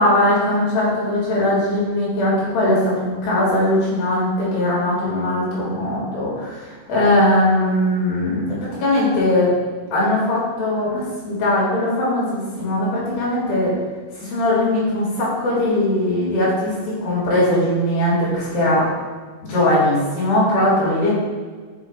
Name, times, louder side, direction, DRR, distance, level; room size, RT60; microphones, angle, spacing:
voice 1, 0.0-9.5 9.9-13.7 14.2-18.9 19.4-21.1, left 1 dB, 80° left, -6 dB, 3.8 m, -20 dB
8.7 x 5.1 x 2.3 m, 1.4 s
omnidirectional pair, 4.2 m